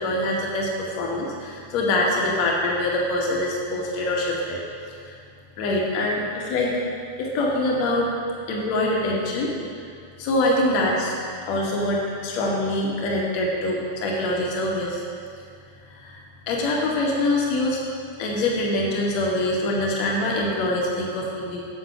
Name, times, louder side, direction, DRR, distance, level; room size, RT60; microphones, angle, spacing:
voice 1, 0.0-4.6 5.0-5.2 5.6-6.8 7.2-8.1 8.5-9.5 10.2-11.1 11.5-15.0 15.9-16.2 16.5-17.8 18.2-21.7, left 1 dB, 45° left, -3 dB, 2.1 m, -24 dB
7.7 x 7.2 x 5.9 m, 2.3 s
figure-of-eight pair, 90°, 0 cm